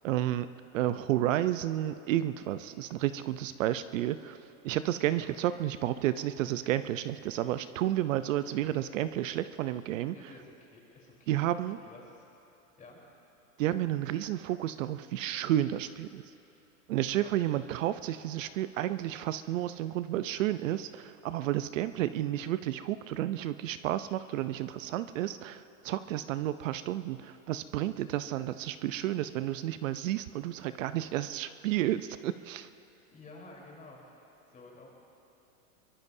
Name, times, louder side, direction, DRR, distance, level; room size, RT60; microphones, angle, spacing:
voice 1, 0.0-0.5 0.7-4.4 4.6-10.1 11.3-11.8 13.6-16.2 16.9-32.7, right 13 dB, 65° right, 12 dB, 0.7 m, -31 dB
voice 2, 10.1-11.6 11.8-12.2 12.8-13.0 17.1-17.3 33.1-34.9, left 3 dB, 20° left, -2 dB, 3.8 m, -52 dB
23.0 x 22.0 x 2.7 m, 3.0 s
hypercardioid pair, 130°, 42 cm